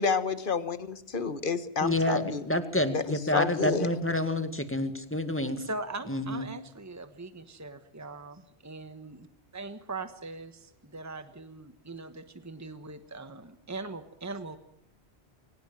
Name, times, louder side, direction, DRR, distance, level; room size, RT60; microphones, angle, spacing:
voice 1, 0.0-2.4 2.9-3.0 3.3-3.9, left 5 dB, 50° left, 12 dB, 1.6 m, -29 dB
voice 2, 1.8-5.7 6.1-6.5, left 1 dB, 10° left, 9 dB, 1.9 m, -28 dB
voice 3, 5.7-9.3 9.5-14.6, right 3 dB, 15° right, 10 dB, 1.3 m, -41 dB
23.0 x 18.5 x 7.5 m, 0.73 s
omnidirectional pair, 1.1 m